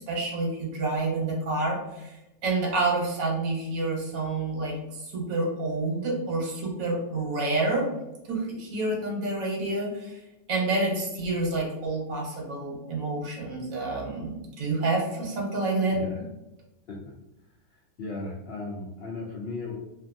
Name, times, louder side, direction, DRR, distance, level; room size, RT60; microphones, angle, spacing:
voice 1, 0.0-2.1 2.4-7.9 8.3-10.2 10.5-16.0, right 2 dB, 70° right, -1 dB, 1.2 m, -28 dB
voice 2, 15.9-16.2 16.9-17.0 18.0-19.7, left 3 dB, 85° left, -2 dB, 0.5 m, -36 dB
2.5 x 2.5 x 2.5 m, 0.95 s
omnidirectional pair, 1.6 m